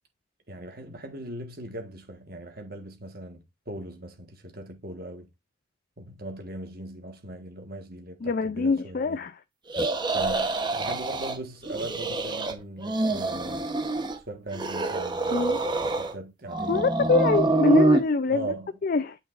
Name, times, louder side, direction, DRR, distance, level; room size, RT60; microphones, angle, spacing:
voice 1, 0.5-5.3 6.0-9.2 10.1-13.7 14.2-17.1 18.3-18.7, right 1 dB, 50° right, 1.5 m, -39 dB
voice 2, 8.2-9.3 15.3-15.6 16.7-18.5 18.8-19.2, left 3 dB, 45° left, 0.4 m, -24 dB
sound 1, 9.7-11.4 11.7-12.5 12.8-14.2 14.5-16.1 16.5-18.0, right 2 dB, 25° right, 0.9 m, -26 dB
8.8 x 5.1 x 2.5 m
head